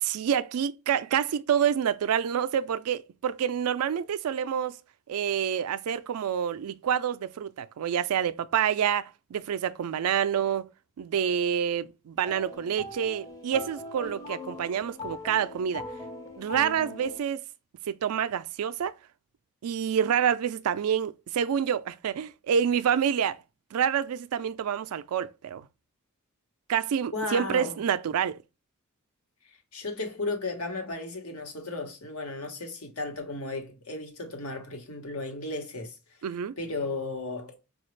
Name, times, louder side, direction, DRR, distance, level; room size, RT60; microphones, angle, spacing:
voice 1, 0.0-4.8 5.1-10.7 11.0-15.8 16.4-17.4 17.9-19.0 19.6-23.4 23.7-25.7 26.7-28.4 36.2-36.6, right 8 dB, 80° right, 0.4 m, -27 dB
sound 1, 12.2-17.2, left 2 dB, 15° left, 0.6 m, -41 dB
voice 2, 27.1-27.8 29.7-36.0 36.6-37.6, left 3 dB, 75° left, 1.1 m, -34 dB
4.9 x 2.3 x 3.1 m
head